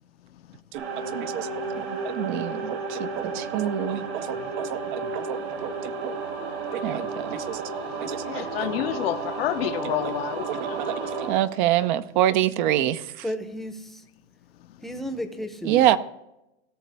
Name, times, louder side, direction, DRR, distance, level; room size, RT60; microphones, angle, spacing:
sound 1, 0.7-11.3, right 4 dB, 75° right, 3.7 m, -32 dB
voice 1, 1.1-1.5 1.8-5.7 6.0-6.1 6.7-7.6 8.0-8.5 10.5-13.0 15.6-16.0, right 13 dB, 50° right, 0.6 m, -26 dB
voice 2, 8.3-10.8, left 13 dB, 65° left, 0.8 m, -29 dB
voice 3, 13.2-14.0 14.8-16.0, equal, ahead, 0.8 m, -33 dB
17.0 x 6.5 x 3.4 m
hypercardioid pair, 135°, 32 cm